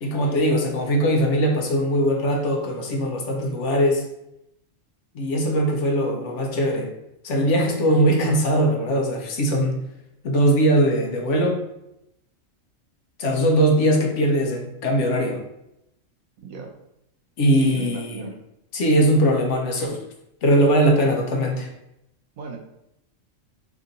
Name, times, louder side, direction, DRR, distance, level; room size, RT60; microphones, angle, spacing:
voice 1, 0.0-4.0 5.1-6.9 7.2-9.8 10.2-11.6 13.2-15.4 17.4-18.3 18.7-20.0 20.4-21.7, right 1 dB, 65° left, 1 dB, 1.0 m, -20 dB
voice 2, 16.4-16.7 17.5-18.3 22.4-22.6, right 4 dB, 90° right, 2 dB, 1.2 m, -35 dB
3.6 x 2.5 x 3.9 m, 0.83 s
omnidirectional pair, 1.4 m